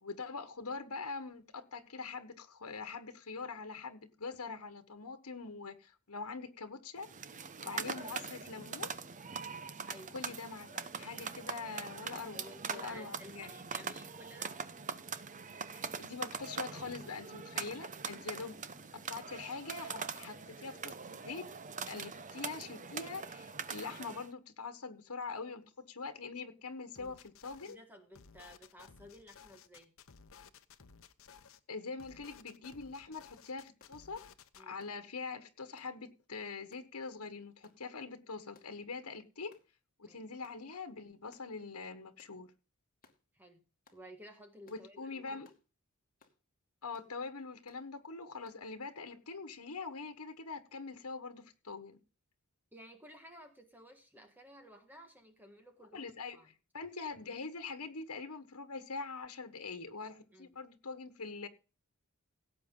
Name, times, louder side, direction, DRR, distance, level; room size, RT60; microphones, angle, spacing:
voice 1, 0.0-7.1 7.6-9.0 10.1-10.7 11.0-13.5 15.7-18.6 18.9-21.5 21.9-27.8 31.7-34.2 34.6-39.5 40.0-42.5 44.7-45.5 46.8-52.0 55.9-61.5, left 4 dB, 85° left, 1.3 m, -44 dB
sound 1, 7.0-24.3, right 6 dB, 35° right, 0.8 m, -43 dB
voice 2, 12.3-14.5 18.3-18.5 27.0-27.2 27.6-29.9 34.5-34.8 40.0-40.2 43.3-43.6 43.9-45.4 52.7-56.5 60.3-60.6, equal, 10° right, 1.6 m, -54 dB
sound 2, 27.0-27.8 28.1-31.6 32.0-34.6, left 6 dB, 65° left, 0.9 m, -57 dB
sound 3, 33.8-34.0 34.8-35.0 35.8-36.0 36.7-36.9 37.6-37.8 38.5-38.8 39.5-39.7 40.4-40.6 41.3-41.5 42.2-42.4 43.0-43.2 43.8-44.0 44.7-44.9 45.4-45.6 46.2-46.4 46.9-47.1 47.7-47.8 48.4-48.6, left 4 dB, 40° left, 2.3 m, -65 dB
17.0 x 7.9 x 3.8 m
head